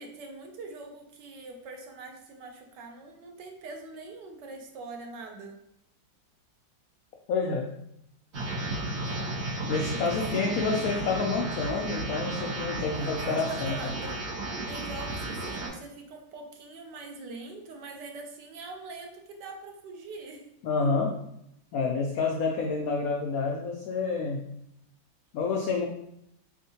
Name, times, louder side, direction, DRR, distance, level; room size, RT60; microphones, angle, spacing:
voice 1, 0.0-5.6 10.2-10.4 12.9-14.2 14.7-20.4, right 3 dB, 70° right, 3 dB, 1.2 m, -43 dB
voice 2, 7.3-7.7 9.7-13.9 20.6-21.1 21.7-24.4 25.3-25.9, left 4 dB, 80° left, 1 dB, 0.7 m, -28 dB
sound 1, 8.3-15.7, right 2 dB, 40° right, 1.1 m, -33 dB
4.2 x 3.6 x 2.8 m, 0.76 s
omnidirectional pair, 2.1 m